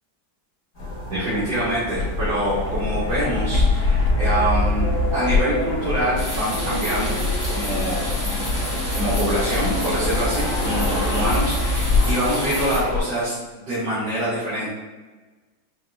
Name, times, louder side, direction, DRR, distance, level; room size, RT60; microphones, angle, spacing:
sound 1, 0.7-11.4, left 1 dB, 45° left, 1.7 m, -31 dB
voice 1, 1.1-7.2 7.5-8.1 9.0-14.7, right 1 dB, 65° right, -10 dB, 1.8 m, -25 dB
Fixed-wing aircraft airplane, 2.0-13.0, left 3 dB, 65° left, 1.4 m, -24 dB
sound 2, 6.2-12.8, equal, 30° right, 0.3 m, -31 dB
5.1 x 3.0 x 2.7 m, 1.2 s
omnidirectional pair, 2.0 m